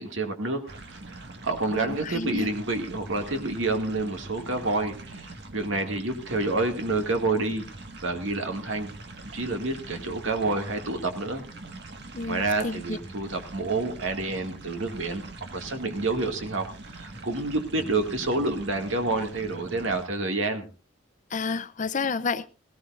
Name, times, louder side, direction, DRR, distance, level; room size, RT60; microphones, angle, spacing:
voice 1, 0.0-7.7 8.0-8.9 9.2-11.4 12.3-15.2 15.5-16.6 16.9-20.7, right 2 dB, 85° right, 2.1 m, -28 dB
sound 1, 0.7-20.1, right 2 dB, 60° right, 1.7 m, -43 dB
voice 2, 1.7-2.5 12.1-13.0 21.3-22.5, left 4 dB, 40° left, 0.6 m, -30 dB
18.0 x 17.0 x 2.5 m
head